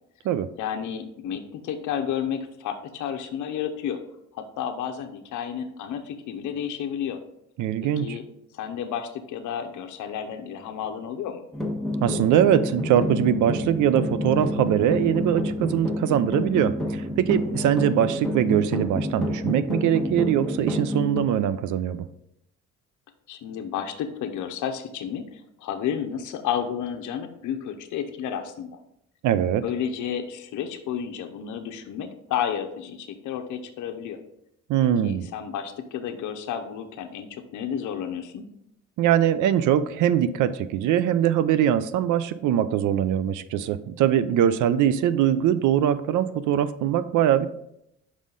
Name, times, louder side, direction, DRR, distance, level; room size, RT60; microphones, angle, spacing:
voice 1, 0.6-4.0 4.3-7.2 7.8-8.2 8.5-11.4 23.3-28.7 29.6-34.2 35.0-38.5, left 8 dB, 80° left, 5 dB, 0.7 m, -31 dB
voice 2, 7.6-8.2 12.0-22.1 29.2-29.6 34.7-35.3 39.0-47.5, right 10 dB, 80° right, 13 dB, 0.5 m, -22 dB
sound 1, 11.5-21.2, left 1 dB, ahead, 1.3 m, -29 dB
5.5 x 4.8 x 3.8 m, 0.78 s
cardioid pair, 90°, 30 cm